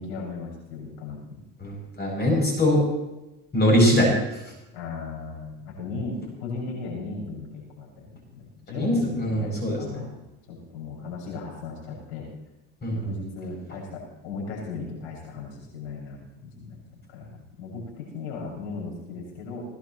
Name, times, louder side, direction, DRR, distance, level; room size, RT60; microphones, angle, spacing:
voice 1, 0.0-1.4 4.7-10.2 10.5-12.3 12.9-19.7, left 4 dB, 90° left, -3 dB, 6.7 m, -37 dB
voice 2, 1.6-2.8 3.5-4.5 8.7-10.0 12.8-13.1, equal, 30° left, 0 dB, 7.8 m, -22 dB
21.5 x 18.5 x 3.2 m, 0.95 s
supercardioid pair, 105°, 33 cm